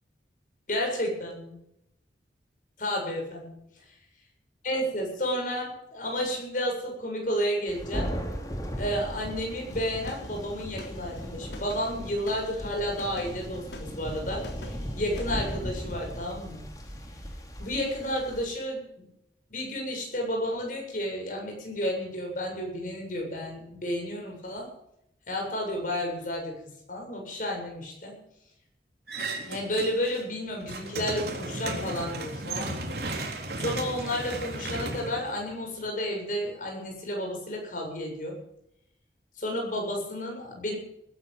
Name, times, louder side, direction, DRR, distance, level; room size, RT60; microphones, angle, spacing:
voice 1, 0.7-1.6 2.8-3.6 4.6-8.1 8.8-16.7 17.6-19.1 19.5-24.7 25.3-26.6 26.9-28.2 29.4-32.8 33.5-38.4 39.4-40.8, equal, 50° left, 0 dB, 7.8 m, -31 dB
Thunder, 7.7-18.5, equal, 20° left, 2.9 m, -37 dB
sound 1, 9.7-15.4, left 1 dB, 80° left, 3.5 m, -46 dB
sound 2, 29.1-30.2 30.5-35.9, right 2 dB, 65° right, 3.6 m, -35 dB
20.0 x 12.5 x 5.5 m, 0.78 s
head